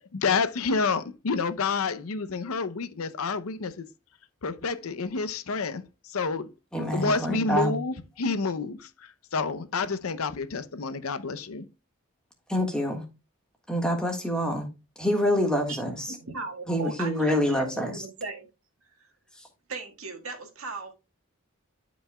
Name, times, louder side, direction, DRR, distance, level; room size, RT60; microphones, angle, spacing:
voice 1, 0.0-3.9 4.4-5.8 6.1-8.9 9.3-11.7, left 4 dB, 90° left, 0.7 m, -29 dB
voice 2, 6.7-7.8 12.5-13.1 13.7-14.7 15.0-16.2 16.7-18.0 19.3-19.5, equal, 5° left, 1.5 m, -26 dB
voice 3, 15.8-18.5 19.0-19.1 19.7-20.9, right 3 dB, 80° right, 1.7 m, -38 dB
12.0 x 5.1 x 2.2 m
head